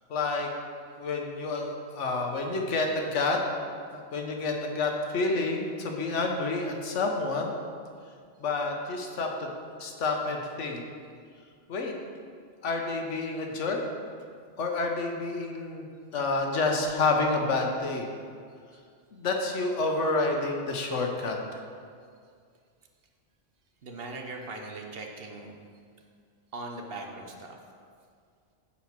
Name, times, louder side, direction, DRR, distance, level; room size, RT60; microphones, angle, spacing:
voice 1, 0.1-0.5 1.0-3.4 3.9-7.5 8.4-9.5 9.8-10.8 11.7-11.9 12.6-13.8 14.6-15.8 16.1-18.1 19.1-21.6, left 3 dB, 85° left, 2 dB, 1.3 m, -29 dB
voice 2, 23.8-25.5 26.5-27.6, right 2 dB, 55° right, 2 dB, 1.0 m, -40 dB
10.0 x 4.4 x 5.9 m, 2.2 s
omnidirectional pair, 1.2 m